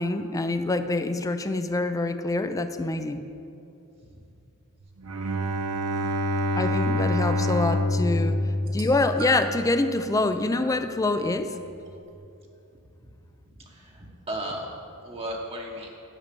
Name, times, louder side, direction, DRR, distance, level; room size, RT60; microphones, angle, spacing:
voice 1, 0.0-3.3 6.6-8.4 8.7-11.6, left 2 dB, 15° left, 9 dB, 0.4 m, -25 dB
Bowed string instrument, 5.1-9.4, left 1 dB, 75° right, 0.7 m, -26 dB
sound 1, 8.6-9.7 10.6-10.8 11.9-12.0, right 2 dB, 60° right, 1.4 m, -38 dB
voice 2, 13.5-14.7 15.0-15.9, right 1 dB, 25° right, -1 dB, 1.0 m, -35 dB
10.0 x 5.5 x 6.8 m, 2.6 s
head